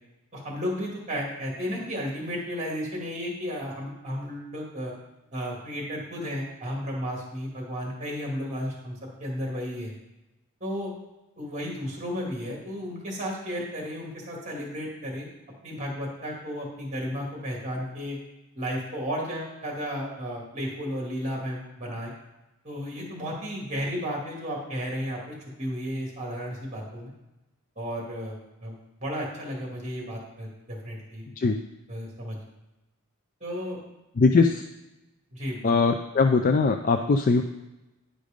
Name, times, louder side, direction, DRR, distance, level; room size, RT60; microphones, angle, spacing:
voice 1, 0.3-4.9 5.3-9.9 10.6-10.9 11.4-15.3 15.6-18.2 18.6-22.1 22.6-27.1 27.8-31.5 31.9-32.4 33.4-33.8 35.3-35.8, equal, 35° right, -2 dB, 2.4 m, -33 dB
voice 2, 34.2-34.6 35.6-37.4, left 4 dB, 40° left, 6 dB, 0.4 m, -21 dB
10.0 x 5.0 x 5.2 m, 1.0 s
head